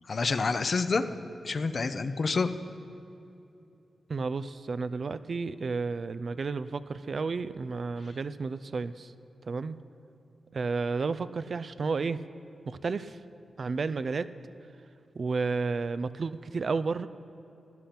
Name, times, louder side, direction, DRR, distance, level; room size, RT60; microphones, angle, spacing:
voice 1, 0.1-1.0 1.4-2.5, left 4 dB, 55° left, 10 dB, 0.7 m, -27 dB
voice 2, 4.1-9.1 9.5-9.8 10.5-12.2 12.7-13.2 13.6-14.3 15.2-17.1, right 4 dB, 60° right, 14 dB, 0.4 m, -32 dB
15.5 x 10.0 x 5.9 m, 2.8 s
cardioid pair, 55°, 0 cm